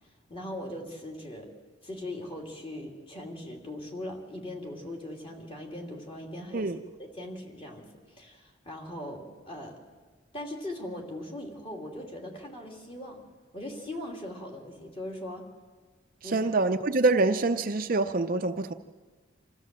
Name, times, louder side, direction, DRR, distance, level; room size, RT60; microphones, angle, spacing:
voice 1, 0.3-1.5 1.8-6.7 7.0-9.8 10.3-13.2 13.5-15.5 16.2-16.5, left 1 dB, 25° left, 0 dB, 2.9 m, -40 dB
voice 2, 16.2-18.7, right 3 dB, 45° right, 7 dB, 0.6 m, -25 dB
26.5 x 15.0 x 7.6 m, 1.4 s
head